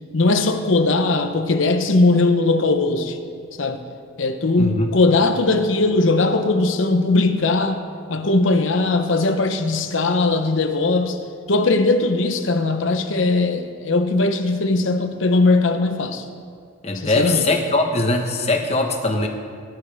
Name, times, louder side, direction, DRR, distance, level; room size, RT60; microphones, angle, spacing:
voice 1, 0.1-3.2 3.6-3.8 4.2-7.8 8.1-11.2 11.5-16.2 16.9-17.5, left 3 dB, 75° left, 7 dB, 0.9 m, -19 dB
voice 2, 4.6-4.9 16.8-19.3, left 2 dB, 30° left, 3 dB, 1.2 m, -21 dB
19.5 x 11.0 x 3.5 m, 2.1 s
head